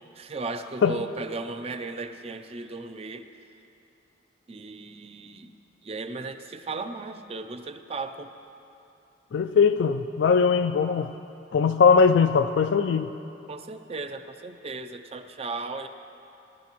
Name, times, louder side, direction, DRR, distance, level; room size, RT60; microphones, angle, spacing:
voice 1, 0.1-3.3 4.5-5.5 5.8-8.3 13.5-15.9, right 3 dB, 30° right, 8 dB, 0.5 m, -36 dB
voice 2, 9.3-11.1 11.5-13.1, left 5 dB, 70° left, 8 dB, 0.3 m, -20 dB
21.5 x 12.0 x 3.1 m, 2.9 s
head